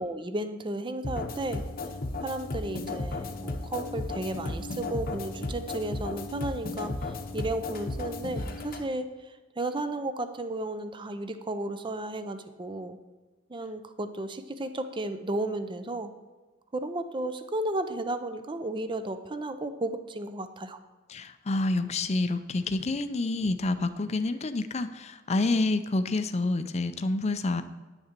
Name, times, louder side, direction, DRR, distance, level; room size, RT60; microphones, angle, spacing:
voice 1, 0.0-1.6 2.2-9.1 9.6-13.0 13.5-16.1 16.7-20.8, right 2 dB, 25° right, 9 dB, 0.6 m, -33 dB
sound 1, 1.0-8.8, left 2 dB, 50° left, 0.9 m, -35 dB
voice 2, 21.1-27.6, left 2 dB, 35° left, 10 dB, 0.5 m, -28 dB
9.6 x 6.6 x 4.4 m, 1.3 s
head